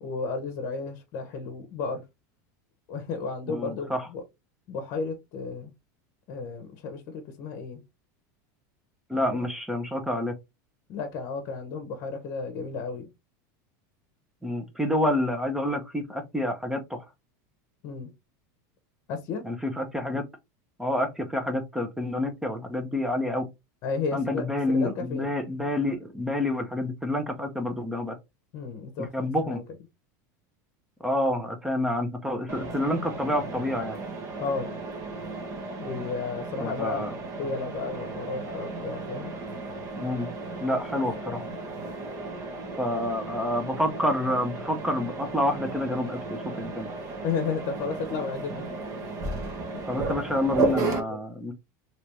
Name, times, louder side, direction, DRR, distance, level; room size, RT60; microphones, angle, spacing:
voice 1, 0.0-2.0 2.9-4.2 4.7-5.7 6.3-7.8 9.1-9.2 10.9-13.1 17.8-18.1 19.1-19.4 23.8-25.3 28.5-29.6 34.4-34.7 35.8-39.3 41.2-41.4 47.2-48.7 49.7-50.0 51.1-51.2, left 4 dB, 50° left, 0.9 m, -33 dB
voice 2, 3.5-4.1 9.1-10.3 14.4-17.0 19.4-20.2 20.8-23.5 24.1-28.2 29.0-29.6 31.0-34.0 36.6-37.1 39.9-40.3 40.6-41.4 42.8-46.9 49.9-51.5, left 1 dB, 5° right, 0.7 m, -28 dB
Mechanisms, 32.5-51.0, right 3 dB, 35° right, 1.0 m, -34 dB
3.3 x 2.9 x 2.9 m
supercardioid pair, 140°, 10 cm